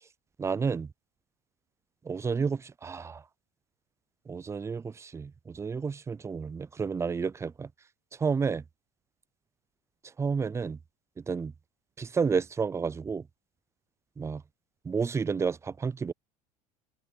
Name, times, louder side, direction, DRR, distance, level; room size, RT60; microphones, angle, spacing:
voice 1, 0.4-0.9 2.1-3.2 4.3-7.7 8.2-8.6 10.2-10.8 11.3-11.5 12.0-13.2 14.2-14.4 14.9-16.1, right 5 dB, 15° right, 0.3 m, -30 dB
supercardioid pair, 95°, 20 cm